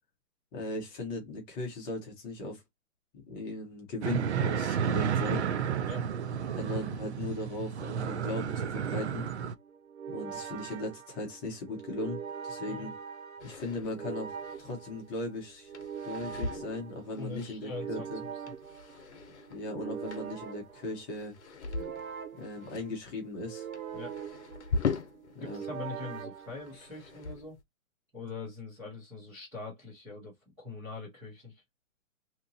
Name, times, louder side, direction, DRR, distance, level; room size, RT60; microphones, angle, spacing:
voice 1, 0.5-2.6 3.3-5.4 6.6-9.3 10.1-12.9 13.4-15.7 16.0-18.2 19.5-21.3 22.4-23.7 25.3-25.6, left 2 dB, 15° left, 0.9 m, -38 dB
sound 1, 4.0-9.5, right 8 dB, 55° right, 0.5 m, -31 dB
sound 2, 8.8-27.2, right 7 dB, 75° right, 0.9 m, -43 dB
voice 2, 12.6-12.9 17.2-18.4 23.9-24.1 25.4-27.6 28.1-31.6, left 3 dB, 5° right, 0.6 m, -43 dB
sound 3, 13.4-25.7 26.0-27.6, left 4 dB, 55° left, 0.9 m, -40 dB
2.9 x 2.5 x 3.9 m
hypercardioid pair, 155°, 42 cm